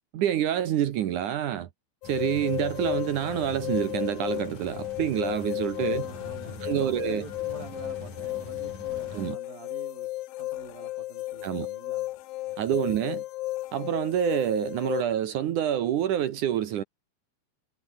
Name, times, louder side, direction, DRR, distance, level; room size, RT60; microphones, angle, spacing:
voice 1, 0.1-1.7 2.0-6.1 6.6-7.2 9.1-9.4 11.4-11.7 12.6-13.2 13.7-16.8, right 11 dB, 70° right, 2.0 m, -27 dB
sound 1, 2.0-15.0, left 17 dB, 80° left, 2.1 m, -34 dB
sound 2, 2.0-9.3, left 3 dB, 45° left, 9.4 m, -43 dB
voice 2, 5.7-10.1 10.4-12.1 12.4-12.6, right 3 dB, 55° right, 9.4 m, -46 dB
omnidirectional pair, 5.0 m